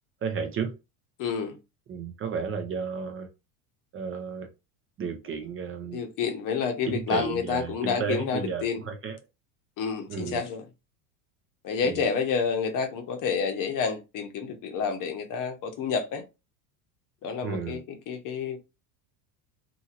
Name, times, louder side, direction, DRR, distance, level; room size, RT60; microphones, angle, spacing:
voice 1, 0.2-0.7 1.9-3.3 3.9-4.5 5.0-6.0 6.9-9.2 10.1-10.4 11.8-12.1 17.4-17.8, right 6 dB, 30° right, 0.5 m, -33 dB
voice 2, 1.2-1.6 5.9-8.8 9.8-10.6 11.6-16.2 17.2-18.6, left 6 dB, 45° left, 0.8 m, -29 dB
2.9 x 2.7 x 2.4 m
supercardioid pair, 110°, 46 cm